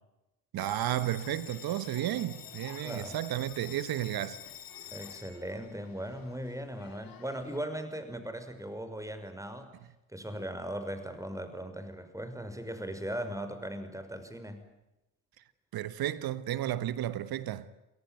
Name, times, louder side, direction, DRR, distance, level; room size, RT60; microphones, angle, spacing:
voice 1, 0.5-4.4 15.7-17.7, right 12 dB, 65° right, 1.4 m, -33 dB
Bell, 0.6-7.6, left 9 dB, 60° left, 3.2 m, -48 dB
voice 2, 2.8-3.2 4.9-9.7 10.1-14.7, right 1 dB, 10° right, 5.8 m, -38 dB
29.5 x 18.0 x 9.3 m
hypercardioid pair, 50°, 40 cm